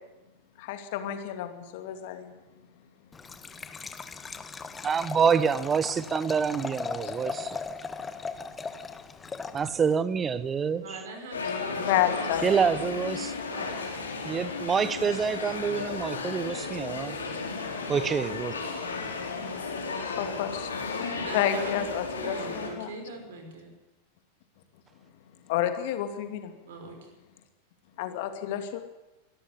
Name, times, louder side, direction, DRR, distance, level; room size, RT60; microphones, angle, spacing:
voice 1, 0.6-2.3 11.8-12.5 17.8-17.9 18.8-19.0 20.0-22.9 25.5-26.5 28.0-28.8, left 11 dB, 50° left, 7 dB, 2.5 m, -30 dB
Liquid, 3.1-10.0, left 4 dB, 15° left, 1.3 m, -38 dB
voice 2, 4.8-7.6 9.5-10.8 12.4-13.3 14.2-17.2 17.9-18.6, right 6 dB, 20° right, 17 dB, 1.1 m, -27 dB
voice 3, 10.8-13.1 13.5-14.0 21.2-21.7 22.2-23.7 26.7-27.1, right 3 dB, 60° right, 5 dB, 5.4 m, -42 dB
sound 1, 11.3-22.7, left 4 dB, 75° left, 4.4 m, -34 dB
23.5 x 13.5 x 9.9 m, 1.0 s
figure-of-eight pair, 90°, 0 cm